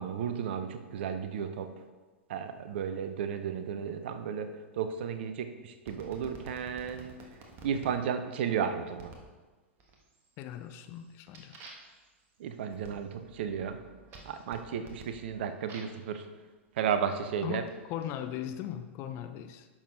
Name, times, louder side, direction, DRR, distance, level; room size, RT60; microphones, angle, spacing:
voice 1, 0.0-1.7 2.3-7.2 7.6-9.1 12.4-13.8 14.3-16.3 16.8-17.6, right 7 dB, 55° right, 9 dB, 0.7 m, -33 dB
sound 1, 5.9-7.9 9.0-9.3 9.8-10.3 10.7-16.0 16.8-18.1, right 3 dB, 35° right, 1.6 m, -52 dB
voice 2, 10.4-11.6 17.4-19.7, left 10 dB, 35° left, 9 dB, 0.6 m, -39 dB
10.5 x 6.5 x 3.9 m, 1.3 s
figure-of-eight pair, 95°, 7 cm